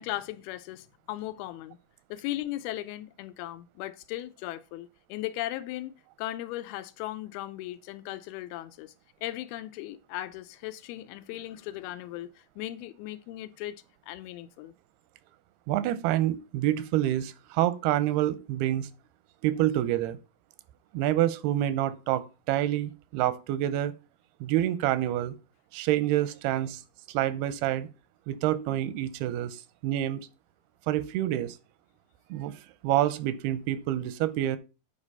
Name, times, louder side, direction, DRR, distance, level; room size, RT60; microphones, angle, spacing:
voice 1, 0.0-1.8 2.1-8.9 9.2-13.8 14.1-14.7, left 15 dB, 85° left, 2.6 m, -37 dB
voice 2, 15.7-18.9 19.4-20.2 20.9-23.9 24.4-25.3 25.7-26.8 27.1-27.9 28.3-30.3 30.9-31.6 32.3-34.6, right 13 dB, 90° right, 2.7 m, -27 dB
8.8 x 5.0 x 5.4 m
omnidirectional pair, 4.4 m